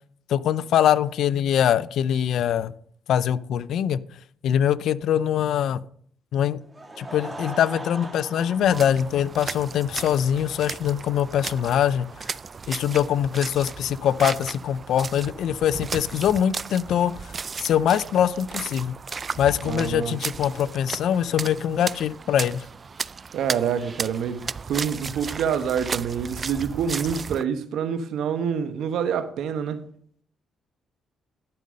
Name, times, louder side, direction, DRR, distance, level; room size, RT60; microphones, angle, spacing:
voice 1, 0.3-2.7 3.1-4.0 4.4-5.8 6.3-6.6 7.0-12.3 12.7-17.3 17.6-19.0 19.4-22.6, left 9 dB, 75° left, 0.4 m, -23 dB
Laughter / Crowd, 6.6-11.1, right 2 dB, 20° right, 2.1 m, -40 dB
sound 1, 8.6-27.4, right 5 dB, 35° right, 0.3 m, -35 dB
voice 2, 19.7-20.1 23.3-29.8, right 7 dB, 75° right, 1.0 m, -27 dB
12.0 x 5.4 x 6.3 m
cardioid pair, 90°, 0 cm